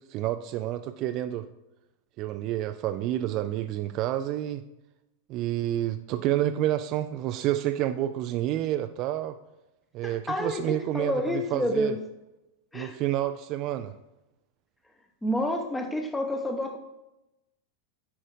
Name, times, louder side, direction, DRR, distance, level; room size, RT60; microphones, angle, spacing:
voice 1, 0.1-1.5 2.2-4.6 5.3-9.4 9.9-11.9 12.7-13.9, right 13 dB, 40° right, 9 dB, 0.3 m, -29 dB
voice 2, 10.0-12.0 12.7-13.0 15.2-16.8, left 1 dB, 10° left, 5 dB, 0.9 m, -29 dB
10.5 x 4.9 x 2.6 m, 0.95 s
figure-of-eight pair, 90°, 0 cm